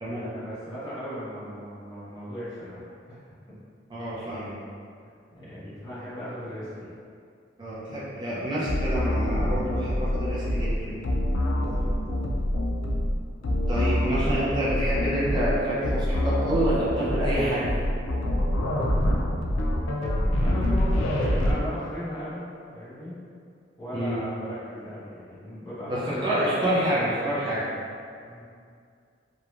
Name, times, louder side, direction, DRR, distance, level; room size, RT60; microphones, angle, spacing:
voice 1, 0.0-3.2 5.3-7.0 11.5-11.9 20.4-23.2 23.8-26.6 28.2-28.4, equal, 20° left, -12 dB, 0.8 m, -37 dB
voice 2, 3.9-4.5 7.6-10.9 13.7-17.7 23.9-24.2 25.9-27.6, right 1 dB, 25° right, -9 dB, 0.4 m, -27 dB
sound 1, 8.7-21.5, left 1 dB, 85° left, 0.4 m, -26 dB
3.0 x 2.2 x 2.4 m, 2.3 s
head